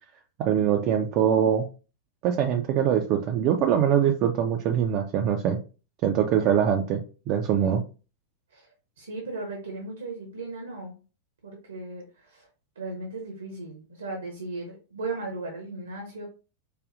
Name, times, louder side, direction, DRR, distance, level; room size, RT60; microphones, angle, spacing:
voice 1, 0.4-1.7 2.2-5.6 6.0-7.0 7.3-7.8, right 9 dB, 40° right, 3 dB, 0.4 m, -23 dB
voice 2, 9.0-10.9 11.4-12.5 12.8-16.2, right 2 dB, 70° right, 2 dB, 0.9 m, -36 dB
4.8 x 2.4 x 2.5 m, 0.34 s
figure-of-eight pair, 90°, 0 cm